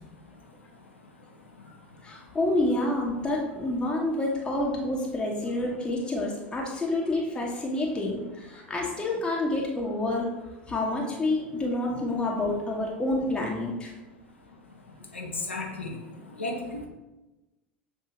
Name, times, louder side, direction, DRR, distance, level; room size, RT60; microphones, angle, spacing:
voice 1, 2.0-10.3 10.7-13.9, left 2 dB, 15° left, -3 dB, 0.9 m, -28 dB
voice 2, 15.1-15.9 16.4-16.6, left 2 dB, 85° left, 0 dB, 0.8 m, -32 dB
6.7 x 2.7 x 2.9 m, 1.1 s
figure-of-eight pair, 75°, 6 cm